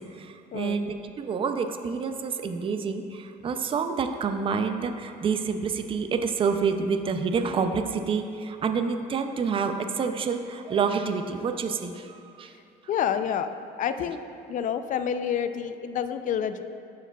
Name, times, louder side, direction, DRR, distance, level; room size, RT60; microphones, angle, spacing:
voice 1, 0.0-12.5, right 5 dB, 30° right, 7 dB, 0.4 m, -28 dB
voice 2, 12.9-13.5 13.8-14.2 14.5-16.6, left 8 dB, 50° left, 10 dB, 0.4 m, -28 dB
12.5 x 4.7 x 2.3 m, 2.6 s
cardioid pair, 110°, 17 cm